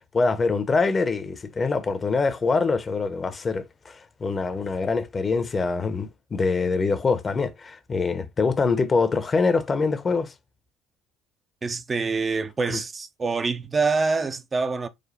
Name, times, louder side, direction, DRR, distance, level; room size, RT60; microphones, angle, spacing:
voice 1, 0.1-10.3 12.7-12.8, left 4 dB, 35° left, 0.7 m, -24 dB
voice 2, 11.6-14.9, right 4 dB, 30° right, 0.5 m, -25 dB
5.0 x 2.2 x 3.9 m
hypercardioid pair, 65°, 0 cm